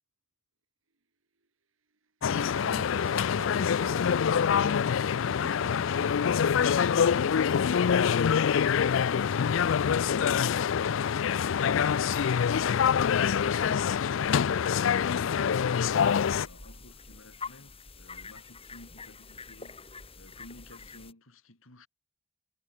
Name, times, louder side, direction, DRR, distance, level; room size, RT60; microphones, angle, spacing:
sound 1, 2.2-16.5, left 7 dB, 70° left, 0.4 m, -25 dB
voice 1, 2.2-7.5, right 2 dB, 80° right, 2.5 m, -47 dB
voice 2, 9.0-19.8 20.1-21.9, left 1 dB, 85° left, 4.5 m, -53 dB
sound 2, 15.9-21.1, left 4 dB, 30° left, 6.3 m, -46 dB
head